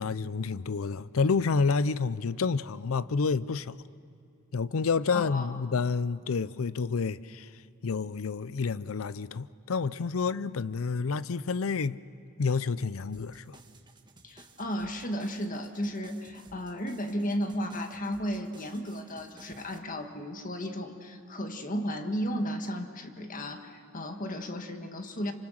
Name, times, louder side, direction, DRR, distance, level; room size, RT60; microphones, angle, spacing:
voice 1, 0.0-3.8 4.5-7.5 7.8-12.0 12.4-13.6, left 4 dB, 80° left, 0.5 m, -29 dB
voice 2, 5.1-5.6 14.2-25.3, equal, 40° left, 1.7 m, -34 dB
sound 1, 13.1-19.8, right 3 dB, 20° right, 1.4 m, -57 dB
27.5 x 25.5 x 6.5 m
head